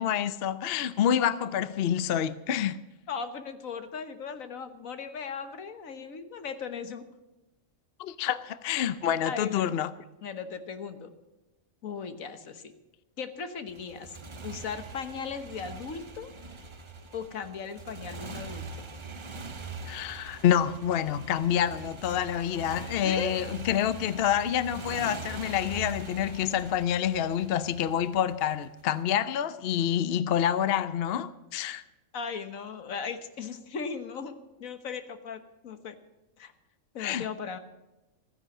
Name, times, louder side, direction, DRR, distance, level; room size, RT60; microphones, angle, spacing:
voice 1, 0.0-2.8 8.0-9.9 19.9-31.8 37.0-37.3, left 9 dB, 55° left, 0.7 m, -27 dB
voice 2, 3.1-7.1 8.8-8.9 9.2-9.7 10.2-11.1 11.8-12.7 13.2-14.2 14.4-16.3 17.1-18.9 23.0-23.4 32.1-36.0 36.4-36.5 36.9-37.6, left 6 dB, 75° left, 1.6 m, -37 dB
Motorcycle, 13.7-28.8, right 3 dB, 30° right, 0.6 m, -43 dB
15.0 x 10.5 x 7.3 m
omnidirectional pair, 1.4 m